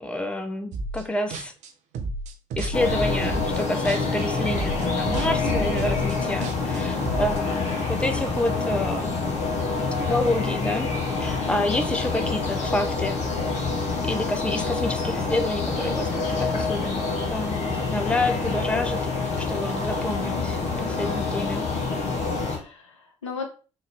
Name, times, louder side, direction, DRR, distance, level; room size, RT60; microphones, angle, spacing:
voice 1, 0.0-1.5 2.6-9.2 10.1-10.9 11.2-13.2 14.0-21.7, left 1 dB, 5° left, 8 dB, 0.6 m, -28 dB
sound 1, 0.7-1.0 1.3-4.2 4.5-7.4, right 3 dB, 50° right, 0.6 m, -31 dB
sound 2, 2.7-22.6, left 4 dB, 45° left, 1.0 m, -27 dB
voice 2, 20.1-20.6 22.3-23.5, left 6 dB, 80° left, 3 dB, 0.6 m, -37 dB
3.9 x 2.6 x 3.3 m, 0.36 s
figure-of-eight pair, 50°, 15 cm